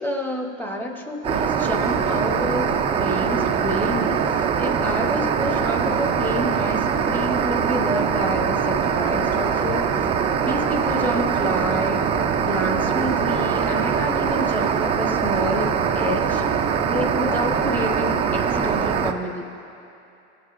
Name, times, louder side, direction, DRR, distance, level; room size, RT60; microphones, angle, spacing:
voice 1, 0.0-10.1 10.4-12.1 12.4-16.4 16.9-19.5, left 1 dB, 5° left, 1 dB, 0.9 m, -29 dB
sound 1, 1.2-19.1, right 7 dB, 20° right, 0.3 m, -22 dB
23.0 x 8.0 x 2.5 m, 2.6 s
supercardioid pair, 120°, 36 cm